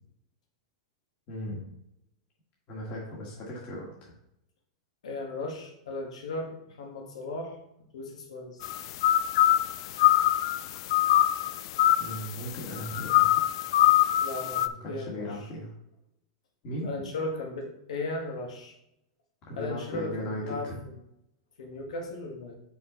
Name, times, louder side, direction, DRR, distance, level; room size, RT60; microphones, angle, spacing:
voice 1, 1.3-1.6 2.7-4.1 12.0-13.4 14.6-15.7 16.6-16.9 19.4-20.8, equal, 35° left, -4 dB, 1.6 m, -37 dB
voice 2, 5.0-7.6 7.9-8.7 14.2-15.2 16.8-18.7 19.6-21.0 21.6-22.6, left 2 dB, 90° left, 1 dB, 1.6 m, -36 dB
sound 1, 8.6-14.7, left 13 dB, 55° left, 0.3 m, -24 dB
6.3 x 5.6 x 3.9 m, 0.80 s
supercardioid pair, 150°, 3 cm